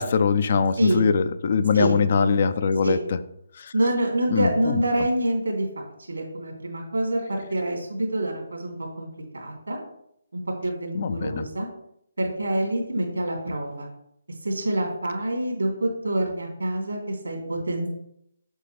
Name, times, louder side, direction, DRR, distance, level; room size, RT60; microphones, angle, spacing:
voice 1, 0.0-3.2 3.6-3.7 4.3-4.8 10.9-11.4, left 5 dB, 45° left, 12 dB, 0.5 m, -22 dB
voice 2, 3.7-9.1 9.3-9.8 10.3-11.7 12.2-13.9 14.4-17.9, right 1 dB, 80° right, 0 dB, 3.1 m, -26 dB
8.0 x 7.4 x 3.4 m, 0.75 s
figure-of-eight pair, 145°, 0 cm